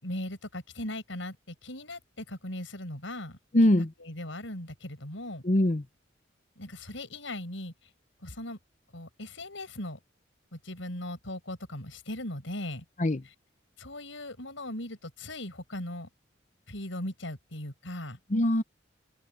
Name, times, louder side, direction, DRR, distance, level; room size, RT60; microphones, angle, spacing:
voice 1, 0.0-3.4 4.0-5.4 6.6-7.7 8.2-8.6 8.9-10.0 10.5-12.8 13.8-16.1 16.7-18.2, left 1 dB, 85° left, 5.7 m, -38 dB
voice 2, 3.5-3.9 5.4-5.8 13.0-13.2 18.3-18.6, left 1 dB, 40° left, 0.8 m, -22 dB
open air
head